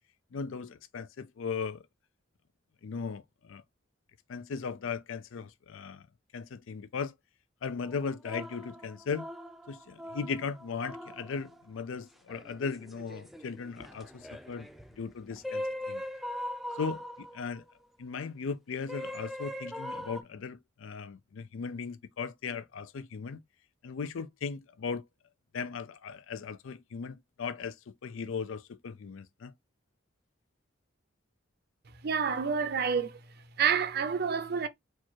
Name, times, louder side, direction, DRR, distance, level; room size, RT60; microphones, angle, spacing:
voice 1, 0.3-1.9 2.8-3.6 4.3-6.1 6.3-7.1 7.6-9.3 9.7-14.7 15.0-16.0 16.7-17.6 18.0-23.4 23.8-25.1 25.5-29.5, left 5 dB, 75° left, 0.4 m, -37 dB
sound 1, 7.8-11.6 12.3-17.7 18.9-20.2, left 1 dB, ahead, 0.5 m, -41 dB
voice 2, 32.0-33.2 33.6-34.7, right 6 dB, 50° right, 0.5 m, -28 dB
4.5 x 2.4 x 4.4 m
head